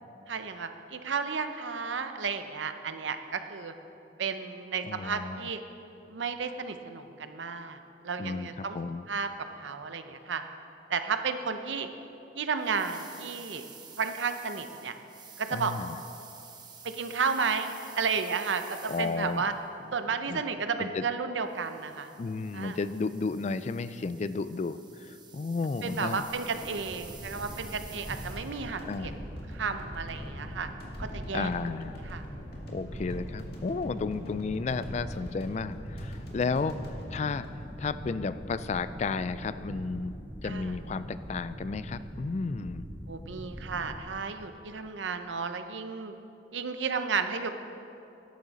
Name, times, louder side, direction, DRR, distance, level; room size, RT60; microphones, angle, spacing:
voice 1, 0.3-3.7 4.2-5.6 6.1-8.8 9.1-9.3 9.6-10.4 10.9-11.9 12.3-13.6 14.0-14.9 15.4-15.7 16.8-19.5 19.9-22.1 22.5-22.8 25.8-29.2 29.5-30.7 31.0-31.5 32.1-32.2 32.9-33.0 40.4-40.7 43.1-46.1 46.5-47.5, right 5 dB, 80° right, 8 dB, 0.7 m, -33 dB
voice 2, 4.8-5.5 8.2-9.0 15.5-16.0 18.9-19.5 20.3-20.4 20.8-21.0 22.2-26.2 28.8-29.1 31.3-32.0 32.7-40.1 40.4-42.9, left 4 dB, 35° left, 13 dB, 0.3 m, -33 dB
sound 1, 12.6-19.6 21.5-28.8, right 6 dB, 25° right, 0.9 m, -50 dB
sound 2, 26.2-38.4, equal, 55° left, 2.0 m, -46 dB
sound 3, 27.1-44.0, equal, 10° left, 1.4 m, -42 dB
13.0 x 10.5 x 4.1 m, 2.8 s
head